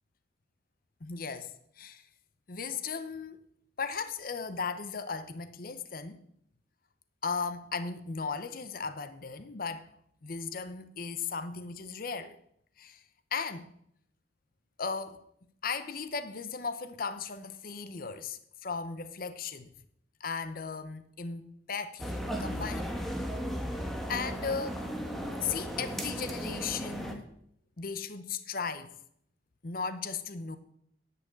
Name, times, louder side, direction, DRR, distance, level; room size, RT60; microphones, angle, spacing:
voice 1, 1.0-2.0 2.5-3.4 3.8-6.2 7.2-9.9 10.2-12.4 12.8-13.0 13.3-13.7 14.8-15.2 15.6-19.7 20.2-22.9 23.8-24.9 25.4-27.2 27.8-28.9 29.6-30.6, left 5 dB, 55° left, 0.7 m, -36 dB
sound 1, 22.0-27.1, equal, ahead, 1.4 m, -35 dB
10.5 x 5.7 x 8.6 m
head